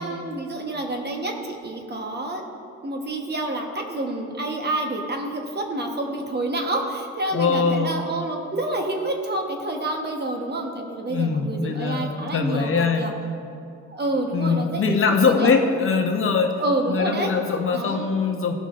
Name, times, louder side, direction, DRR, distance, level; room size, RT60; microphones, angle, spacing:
voice 1, 0.0-2.4 2.8-13.1 13.9-15.5 16.6-17.3 17.7-18.2, right 2 dB, 35° right, 2 dB, 1.1 m, -28 dB
voice 2, 7.3-8.0 11.1-13.1 14.3-16.6 16.9-18.5, left 5 dB, 45° left, 4 dB, 0.8 m, -22 dB
14.5 x 5.6 x 2.5 m, 2.5 s
cardioid pair, 90°, 30 cm